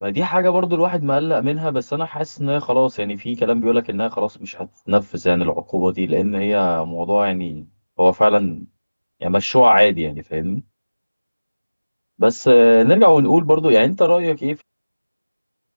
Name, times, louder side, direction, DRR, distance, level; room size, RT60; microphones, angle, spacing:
voice 1, 0.0-7.7 8.0-8.7 9.2-10.6 12.2-14.6, equal, 25° left, 1.5 m, -17 dB
figure-of-eight pair, 180°, 0 cm